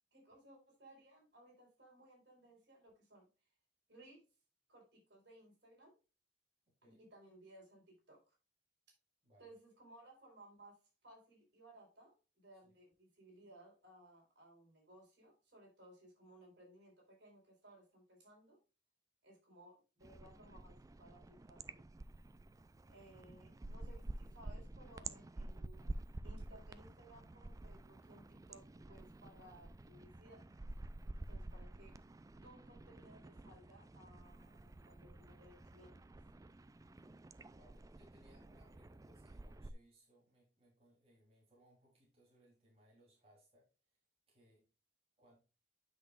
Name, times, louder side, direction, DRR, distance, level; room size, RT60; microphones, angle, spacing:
voice 1, 0.1-3.3 3.9-4.2 4.7-6.0 6.8-8.4 9.4-18.6 19.2-21.8 22.9-25.9 26.2-30.5 31.0-31.9 32.4-36.0, right 1 dB, 70° right, -1 dB, 4.2 m, -61 dB
voice 2, 9.2-9.5 12.6-12.7 37.5-43.7 44.3-44.7 45.2-45.4, right 1 dB, 35° right, -4 dB, 3.3 m, -69 dB
sound 1, 20.0-39.7, right 2 dB, 20° right, 0.3 m, -50 dB
9.5 x 6.0 x 2.4 m, 0.31 s
head